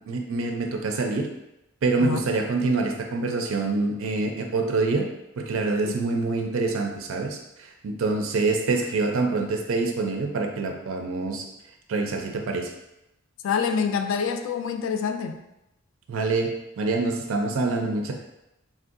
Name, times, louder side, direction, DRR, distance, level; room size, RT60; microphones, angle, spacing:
voice 1, 0.1-1.3 1.8-5.1 5.4-7.4 7.8-11.4 11.9-12.7 16.1-16.5 16.8-18.1, right 3 dB, 75° right, 3 dB, 0.4 m, -25 dB
voice 2, 13.4-15.4, left 6 dB, 65° left, 6 dB, 0.3 m, -26 dB
3.3 x 2.6 x 2.5 m, 0.89 s
head